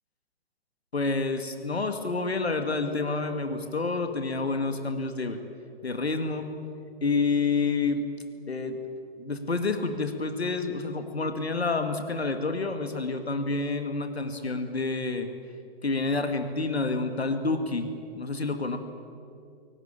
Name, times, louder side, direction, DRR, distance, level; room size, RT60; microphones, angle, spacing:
voice 1, 0.9-5.4 5.8-6.5 7.0-8.1 8.5-8.8 9.2-15.3 15.8-18.8, left 3 dB, 75° left, 7 dB, 2.2 m, -28 dB
23.5 x 18.5 x 8.9 m, 2.5 s
figure-of-eight pair, 125°, 32 cm